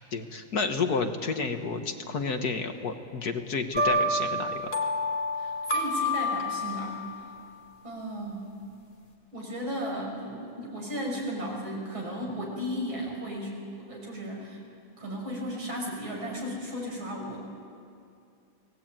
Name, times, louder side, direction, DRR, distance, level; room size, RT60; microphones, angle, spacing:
voice 1, 0.1-4.6, left 4 dB, 55° left, 6 dB, 1.9 m, -30 dB
sound 1, 3.7-7.0, left 1 dB, 30° left, 2.4 m, -28 dB
voice 2, 5.4-7.3 7.8-8.5 9.3-14.6 15.0-17.4, equal, 85° right, -1 dB, 6.7 m, -35 dB
28.5 x 19.5 x 9.1 m, 2.4 s
omnidirectional pair, 2.1 m